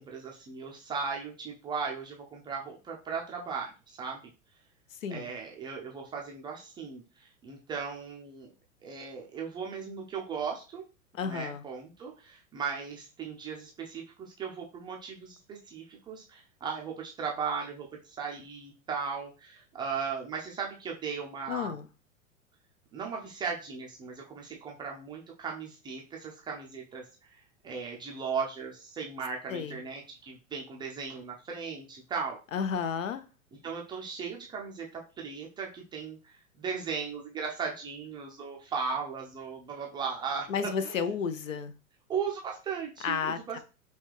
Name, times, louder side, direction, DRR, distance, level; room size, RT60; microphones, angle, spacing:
voice 1, 0.0-4.2 5.1-8.5 8.8-10.8 11.2-21.7 22.9-27.1 27.6-32.4 33.6-41.1 42.1-43.6, right 5 dB, 10° right, 0.4 m, -37 dB
voice 2, 11.1-11.6 21.5-21.9 29.5-29.8 32.5-33.2 40.5-41.7 43.0-43.6, left 6 dB, 70° left, 0.7 m, -32 dB
5.3 x 2.8 x 3.2 m
figure-of-eight pair, 95°, 41 cm